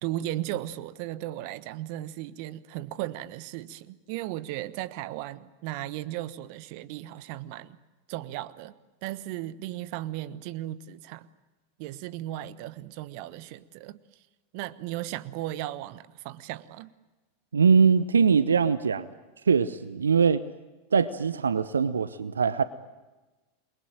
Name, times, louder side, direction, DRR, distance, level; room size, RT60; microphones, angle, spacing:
voice 1, 0.0-7.8 8.1-8.7 9.0-11.3 11.8-14.0 14.5-16.9, right 14 dB, 50° right, 1.2 m, -36 dB
voice 2, 17.5-19.1 19.5-20.4 20.9-22.6, right 6 dB, 80° right, 0.9 m, -22 dB
28.5 x 22.5 x 9.0 m
figure-of-eight pair, 90°, 0 cm